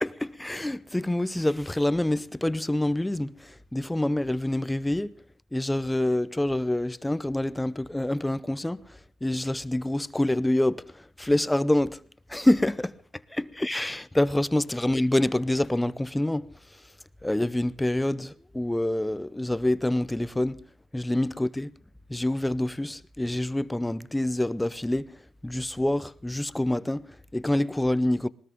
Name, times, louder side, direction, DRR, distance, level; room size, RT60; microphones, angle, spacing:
voice 1, 0.0-5.2 5.5-12.0 12.3-13.0 13.3-16.9 17.2-20.6 20.9-21.7 22.1-28.3, left 1 dB, 10° left, 0.7 m, -27 dB
20.0 x 19.0 x 3.7 m
cardioid pair, 90°, 0 cm